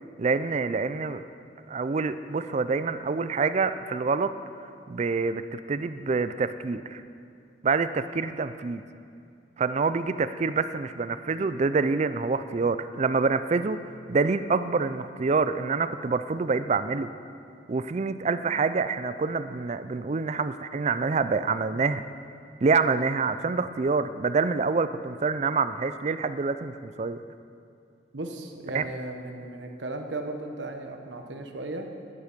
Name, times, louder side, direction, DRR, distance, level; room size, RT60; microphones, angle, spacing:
voice 1, 0.2-1.2 1.7-4.3 4.9-7.0 7.6-8.8 9.6-17.1 17.7-22.0 22.6-27.2 28.7-28.9, right 4 dB, 40° right, 12 dB, 0.4 m, -26 dB
voice 2, 28.1-31.9, right 2 dB, 85° right, 4 dB, 1.2 m, -36 dB
11.5 x 11.0 x 5.1 m, 2.4 s
head